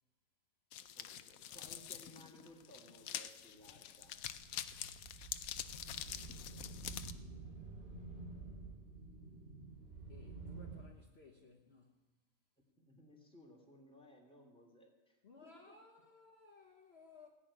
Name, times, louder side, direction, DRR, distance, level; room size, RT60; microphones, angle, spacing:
sound 1, 0.7-7.1, left 10 dB, 85° left, 1.1 m, -46 dB
voice 1, 0.9-4.1 12.8-15.8, equal, 5° left, 2.9 m, -60 dB
sound 2, 4.0-10.8, right 3 dB, 35° right, 3.1 m, -50 dB
voice 2, 6.2-7.6 10.1-12.0 15.2-17.3, left 4 dB, 50° left, 1.4 m, -61 dB
18.0 x 6.2 x 9.9 m
omnidirectional pair, 1.4 m